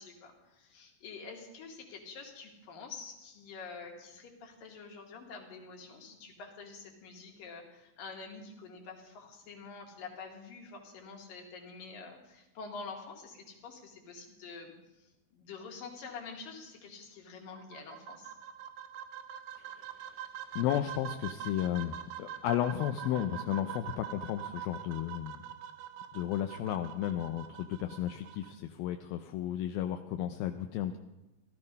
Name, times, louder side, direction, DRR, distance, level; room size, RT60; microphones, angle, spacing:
voice 1, 0.0-18.3, left 4 dB, 65° left, 2 dB, 3.8 m, -47 dB
sound 1, 17.5-28.5, right 10 dB, 80° right, 2.8 m, -44 dB
voice 2, 20.6-25.4 26.1-31.0, left 11 dB, 80° left, 6 dB, 2.5 m, -33 dB
17.0 x 13.0 x 5.4 m, 0.99 s
omnidirectional pair, 4.3 m